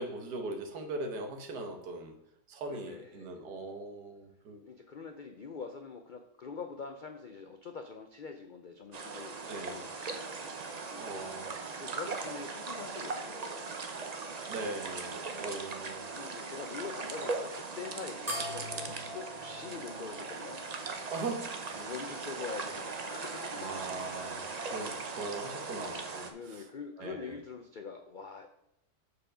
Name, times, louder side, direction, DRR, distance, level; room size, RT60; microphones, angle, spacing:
voice 1, 0.0-2.2 2.5-4.6 9.5-9.8 11.0-11.5 14.5-16.1 21.1-21.5 23.6-24.4 24.7-26.7 27.0-27.4, right 2 dB, 90° right, 5 dB, 1.7 m, -40 dB
voice 2, 2.7-3.4 4.6-10.5 10.9-11.2 11.8-13.7 16.1-20.7 21.8-23.8 24.7-25.1 26.3-28.5, left 5 dB, 80° left, 5 dB, 0.4 m, -44 dB
sound 1, 8.9-26.3, right 4 dB, 50° right, 0.4 m, -39 dB
sound 2, 18.3-21.1, left 1 dB, 15° right, 2.4 m, -42 dB
6.9 x 5.3 x 5.0 m, 0.80 s
omnidirectional pair, 1.7 m